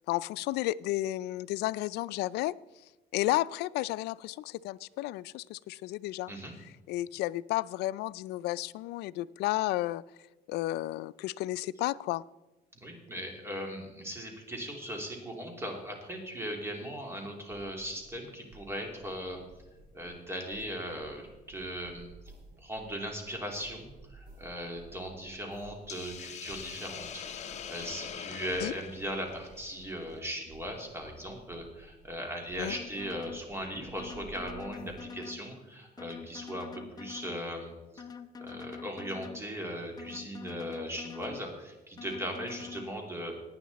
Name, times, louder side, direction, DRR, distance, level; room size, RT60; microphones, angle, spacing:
voice 1, 0.1-2.6 3.1-6.3 6.9-10.0 10.5-12.2 28.6-28.7 32.6-32.7, left 16 dB, 85° left, 19 dB, 0.4 m, -32 dB
voice 2, 12.8-19.4 19.9-22.1 22.6-38.0 38.4-43.3, equal, 15° right, 1 dB, 2.8 m, -38 dB
sound 1, 17.5-18.2 18.5-20.2 20.5-26.2 26.5-28.2 28.5-30.2 30.5-32.2 32.5-34.9, right 2 dB, 55° right, 3.4 m, -55 dB
Hiss, 25.9-30.2, left 8 dB, 45° left, 1.0 m, -43 dB
sound 2, 32.7-33.4 34.0-35.4 36.0-37.4 38.0-39.4 40.0-41.4 42.0-42.9, left 6 dB, 25° left, 0.6 m, -45 dB
17.5 x 9.4 x 4.1 m, 1.1 s
cardioid pair, 125°, 17 cm